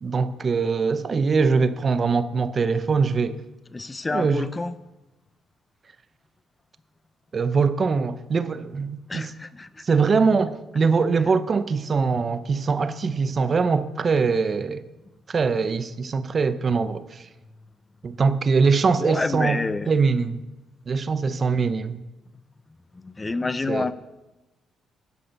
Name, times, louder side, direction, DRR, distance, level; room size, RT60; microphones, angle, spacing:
voice 1, 0.0-3.4 4.1-4.5 7.3-9.3 9.9-14.8 15.3-17.2 18.0-19.6 19.9-20.4 20.9-22.0 23.7-23.9, right 5 dB, 40° right, 0.7 m, -22 dB
voice 2, 3.7-4.7 9.1-9.7 19.0-19.9 23.0-23.9, left 3 dB, 20° left, 0.5 m, -28 dB
11.0 x 10.0 x 5.3 m
cardioid pair, 90°, 0 cm